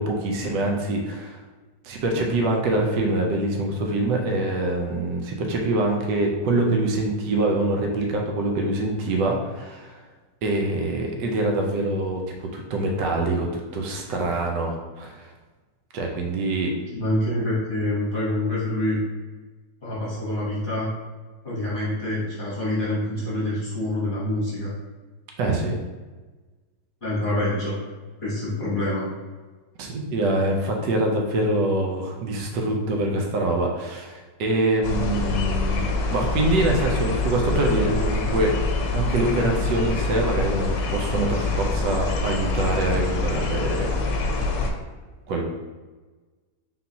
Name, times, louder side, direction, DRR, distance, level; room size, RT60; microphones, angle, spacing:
voice 1, 0.0-1.4 1.8-10.0 10.4-15.3 15.9-16.7 25.4-25.8 29.8-35.8 36.1-38.5 38.9-43.9 45.3-45.4, right 2 dB, 80° right, 1 dB, 1.3 m, -24 dB
voice 2, 16.9-19.0 19.8-20.9 21.4-24.8 27.0-27.8 28.2-29.1, left 1 dB, 35° left, -8 dB, 1.0 m, -26 dB
sound 1, 34.8-44.7, left 2 dB, 90° left, 1.3 m, -25 dB
3.9 x 3.7 x 2.8 m, 1.3 s
omnidirectional pair, 1.9 m